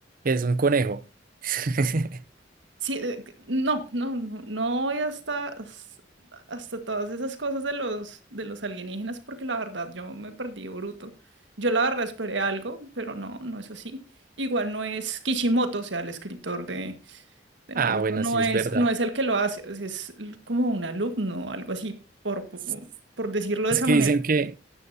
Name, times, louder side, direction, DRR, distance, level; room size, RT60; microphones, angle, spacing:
voice 1, 0.2-1.0 1.4-2.2 17.7-18.9 23.7-24.5, right 4 dB, 50° right, 0.6 m, -24 dB
voice 2, 2.8-5.8 6.3-11.1 11.6-14.0 14.4-17.2 17.7-21.9 22.2-22.8 23.2-24.1, right 2 dB, 75° right, 1.7 m, -29 dB
13.5 x 11.0 x 2.8 m
head